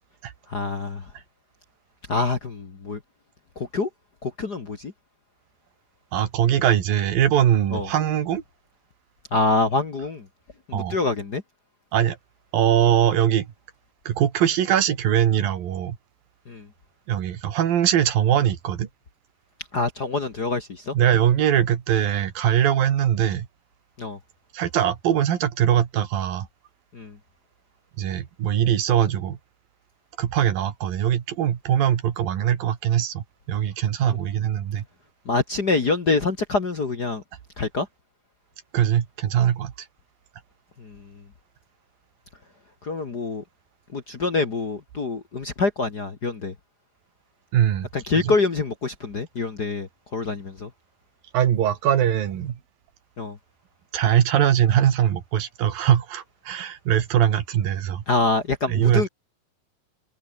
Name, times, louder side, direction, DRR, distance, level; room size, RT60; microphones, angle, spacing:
voice 1, 0.5-1.0 2.1-3.0 3.6-3.9 4.2-4.9 7.7-7.9 9.3-10.2 10.7-11.4 16.5-16.7 19.7-20.9 24.0-24.2 26.9-27.2 35.3-37.2 37.6-37.9 40.8-41.0 42.8-43.4 43.9-46.5 47.9-50.7 53.2-53.4 58.1-59.1, left 3 dB, 35° left, 1.8 m, -25 dB
voice 2, 6.1-8.4 10.7-11.0 11.9-12.2 12.5-13.5 14.1-16.0 17.1-18.9 20.9-23.5 24.5-26.5 28.0-29.4 30.2-34.9 38.7-39.7 47.5-48.4 51.3-52.6 53.9-58.0 58.7-59.1, right 10 dB, 75° right, 3.8 m, -21 dB
omnidirectional pair, 4.1 m